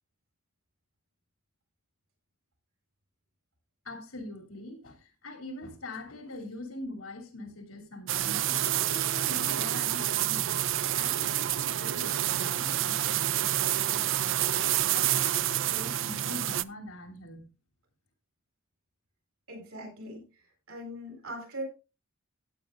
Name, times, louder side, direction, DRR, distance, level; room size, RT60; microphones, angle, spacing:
voice 1, 3.8-10.6 10.9-17.5, left 2 dB, 85° left, 3.1 m, -43 dB
sound 1, 8.1-16.6, right 12 dB, 60° right, 0.4 m, -28 dB
voice 2, 19.5-20.2 20.7-21.6, right 1 dB, 85° right, 7.5 m, -40 dB
16.0 x 8.9 x 2.6 m
head